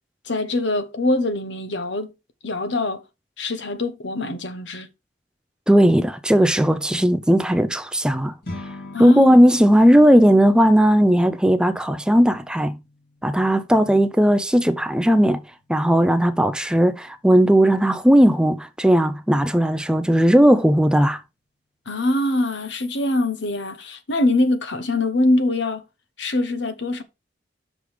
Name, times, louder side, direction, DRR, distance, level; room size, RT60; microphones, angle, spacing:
voice 1, 0.3-2.1 2.4-3.0 3.4-4.9 8.9-9.3 21.9-25.8 26.2-27.0, left 2 dB, 75° left, 1.2 m, -23 dB
voice 2, 5.7-8.3 9.0-12.8 13.2-15.4 15.7-21.2, equal, 5° right, 0.5 m, -16 dB
sound 1, 8.4-17.9, left 1 dB, 55° left, 2.9 m, -44 dB
6.3 x 5.1 x 4.9 m
head